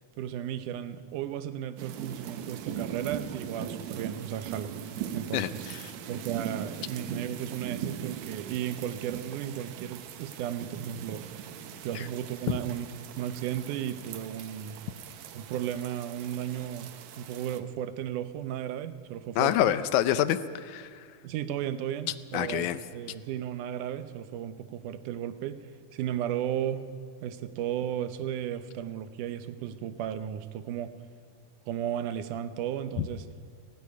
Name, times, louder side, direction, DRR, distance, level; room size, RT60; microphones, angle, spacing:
voice 1, 0.2-4.8 5.1-5.7 6.1-11.3 11.8-12.9 13.2-14.8 15.3-19.7 21.2-25.7 25.9-26.9 27.2-30.9 31.7-33.3, right 10 dB, 90° right, 11 dB, 2.3 m, -34 dB
sound 1, 1.8-17.6, right 9 dB, 70° right, 2.1 m, -40 dB
voice 2, 5.3-5.8 19.4-20.9 22.3-22.8, left 12 dB, 80° left, 13 dB, 2.1 m, -26 dB
17.0 x 16.5 x 9.6 m, 2.1 s
omnidirectional pair, 3.5 m